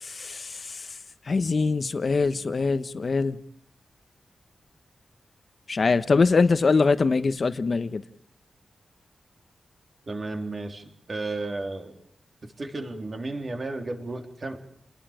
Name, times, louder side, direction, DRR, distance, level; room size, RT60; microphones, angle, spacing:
voice 1, 0.0-0.8 1.3-3.4 5.7-8.0, left 4 dB, 45° left, 1.1 m, -23 dB
voice 2, 10.1-12.0 12.4-14.7, right 2 dB, 40° right, 3.5 m, -33 dB
29.5 x 21.0 x 5.1 m
wide cardioid pair, 130°, 0 cm